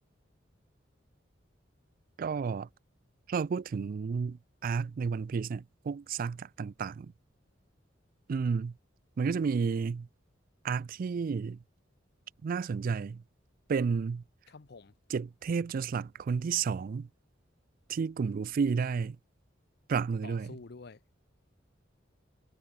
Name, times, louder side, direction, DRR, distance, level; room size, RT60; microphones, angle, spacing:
voice 1, 2.2-2.7 3.3-7.1 8.3-8.7 9.2-10.1 10.6-11.6 12.4-13.2 13.7-14.2 15.1-17.1 17.9-19.2 19.9-20.6, right 5 dB, 50° right, 0.3 m, -31 dB
voice 2, 14.5-14.9 20.2-21.0, left 4 dB, 60° left, 0.7 m, -48 dB
head